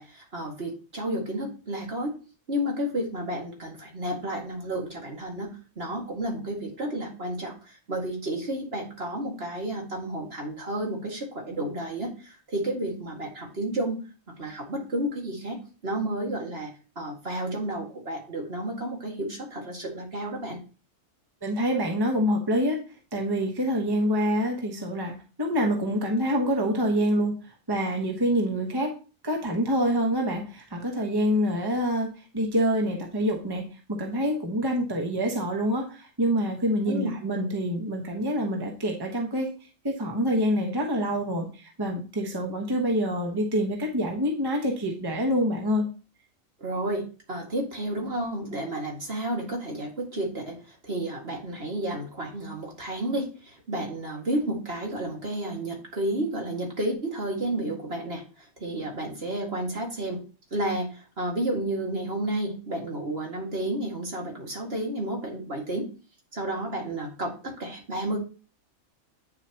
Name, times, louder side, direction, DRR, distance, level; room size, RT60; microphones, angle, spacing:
voice 1, 0.0-2.1 2.5-14.0 14.4-16.7 17.0-20.6 36.9-37.2 46.6-60.2 60.5-65.9 66.3-68.2, right 1 dB, 50° right, 0 dB, 2.4 m, -31 dB
voice 2, 21.4-22.8 23.1-27.3 27.7-28.9 29.2-32.1 32.3-33.6 33.9-39.5 39.8-45.8, equal, 20° right, 1 dB, 1.2 m, -26 dB
9.1 x 6.8 x 3.0 m, 0.34 s
omnidirectional pair, 1.3 m